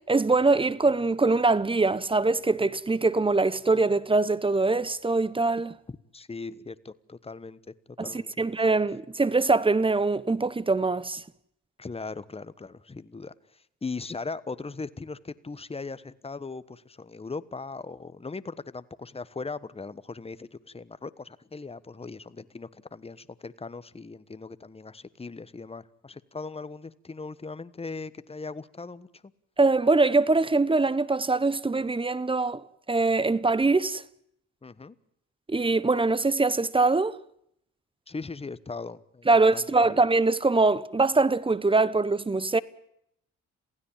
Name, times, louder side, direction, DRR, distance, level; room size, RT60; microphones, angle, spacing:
voice 1, 0.1-5.7 8.0-11.2 29.6-34.0 35.5-37.2 39.3-42.6, right 3 dB, 15° right, 1.0 m, -23 dB
voice 2, 5.9-7.6 8.0-8.3 8.7-8.8 11.8-29.2 34.6-35.0 38.1-40.0, left 4 dB, 20° left, 1.3 m, -39 dB
27.5 x 16.0 x 7.3 m
cardioid pair, 90°, 30 cm